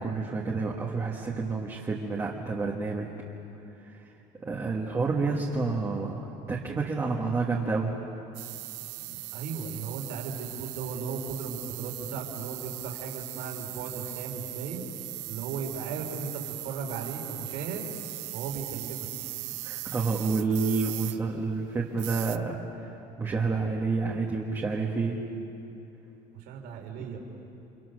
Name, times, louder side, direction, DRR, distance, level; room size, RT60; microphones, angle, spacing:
voice 1, 0.0-3.1 4.4-7.9 19.6-22.9 23.2-25.2, right 4 dB, 15° right, -2 dB, 1.5 m, -29 dB
sound 1, 8.3-22.4, right 18 dB, 80° right, 0.8 m, -39 dB
voice 2, 9.1-14.8 15.3-17.9 18.3-19.1 26.3-27.2, right 5 dB, 60° right, 2 dB, 3.5 m, -36 dB
30.0 x 27.5 x 6.4 m, 2.9 s
cardioid pair, 180°, 18 cm